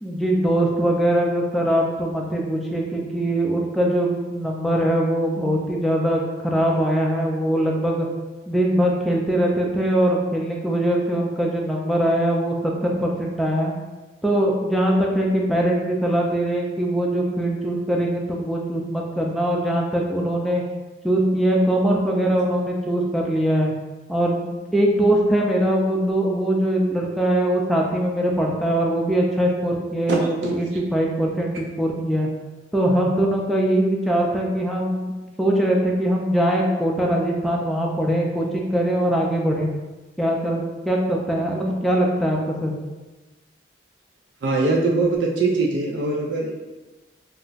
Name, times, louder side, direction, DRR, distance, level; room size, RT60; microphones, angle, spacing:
voice 1, 0.0-8.1 8.5-13.7 14.2-20.6 21.0-23.7 24.1-32.3 32.7-39.7 40.2-42.7, right 1 dB, ahead, -2 dB, 0.3 m, -22 dB
voice 2, 30.1-30.5 44.4-46.5, right 3 dB, 75° right, -1 dB, 0.4 m, -22 dB
2.4 x 2.1 x 3.8 m, 1.2 s
head